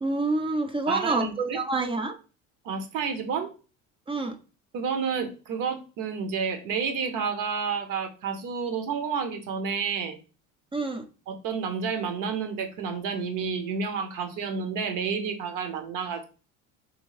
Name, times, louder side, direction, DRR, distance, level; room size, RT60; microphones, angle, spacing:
voice 1, 0.0-2.2 4.1-4.4 10.7-11.0, right 2 dB, 15° right, 5 dB, 0.4 m, -27 dB
voice 2, 0.9-1.6 2.6-3.5 4.7-10.2 11.3-16.2, right 6 dB, 60° right, 6 dB, 1.0 m, -30 dB
3.2 x 2.7 x 3.1 m, 0.35 s
supercardioid pair, 90°, 36 cm